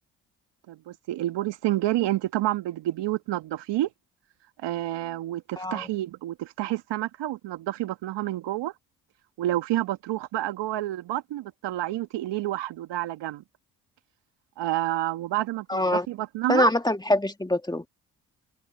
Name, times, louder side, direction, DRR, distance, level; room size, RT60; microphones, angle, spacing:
voice 1, 0.7-3.9 4.6-8.7 9.4-13.4 14.6-16.7, right 15 dB, 70° right, 1.8 m, -29 dB
voice 2, 5.6-5.9 15.7-16.1 16.5-17.8, left 1 dB, 10° left, 2.1 m, -24 dB
hypercardioid pair, 55°, 44 cm